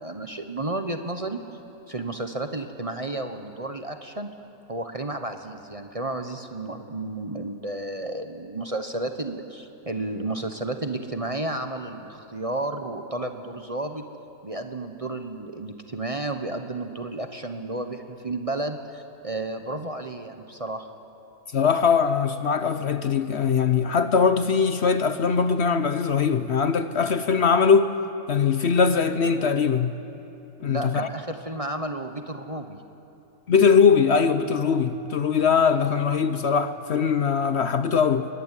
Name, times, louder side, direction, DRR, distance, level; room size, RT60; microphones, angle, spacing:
voice 1, 0.0-1.4 1.9-4.3 4.7-14.0 14.4-20.9 30.6-32.8, right 2 dB, 25° right, 1.0 m, -32 dB
voice 2, 21.5-27.9 28.3-29.9 30.6-31.1 33.5-38.3, left 6 dB, 55° left, 1.0 m, -21 dB
23.5 x 18.5 x 9.8 m
omnidirectional pair, 1.5 m